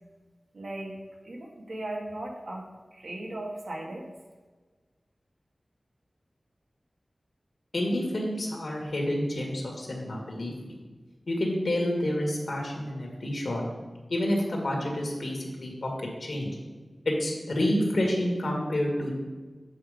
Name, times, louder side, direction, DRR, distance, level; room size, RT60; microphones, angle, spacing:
voice 1, 0.5-1.0 1.2-2.6 2.9-4.1, right 1 dB, 80° right, -1 dB, 1.7 m, -37 dB
voice 2, 7.7-10.7 11.3-13.6 14.1-15.9 16.2-16.5 17.1-19.2, left 1 dB, 75° left, 0 dB, 2.1 m, -29 dB
8.6 x 5.1 x 5.1 m, 1.3 s
wide cardioid pair, 70°, 0 cm